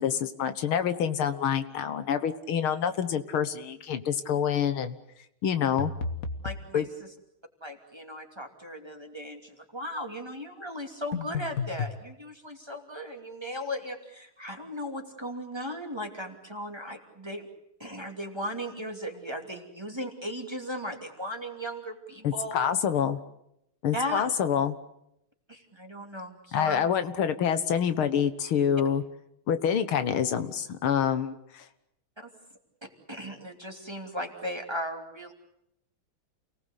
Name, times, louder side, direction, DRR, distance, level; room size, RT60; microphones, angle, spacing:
voice 1, 0.0-5.0 5.4-5.9 6.7-6.9 22.2-23.2 23.8-24.8 26.5-29.0 29.5-31.6, left 8 dB, 85° left, 11 dB, 2.2 m, -27 dB
sound 1, 5.8-6.7 11.1-12.0, left 5 dB, 45° left, 1.8 m, -32 dB
voice 2, 6.4-7.1 7.6-17.5 17.8-22.6 23.9-24.3 25.5-26.9 32.2-32.3 32.8-35.3, equal, 10° right, 3 dB, 2.8 m, -37 dB
29.0 x 19.0 x 8.3 m, 0.80 s
omnidirectional pair, 2.3 m